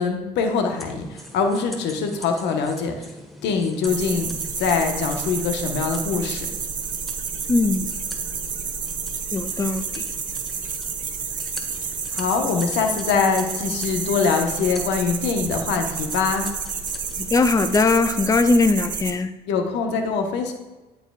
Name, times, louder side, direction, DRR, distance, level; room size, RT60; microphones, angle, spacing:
voice 1, 0.0-3.1 3.4-6.5 12.1-16.5 19.5-20.5, left 5 dB, 75° left, 4 dB, 1.1 m, -23 dB
sound 1, 0.7-17.9, equal, ahead, 1.5 m, -42 dB
sound 2, 3.9-19.1, right 6 dB, 45° right, 1.0 m, -30 dB
voice 2, 7.5-7.9 9.3-10.0 17.2-19.3, left 3 dB, 20° left, 10 dB, 0.5 m, -20 dB
13.0 x 4.7 x 2.4 m, 1.2 s
supercardioid pair, 65°, 18 cm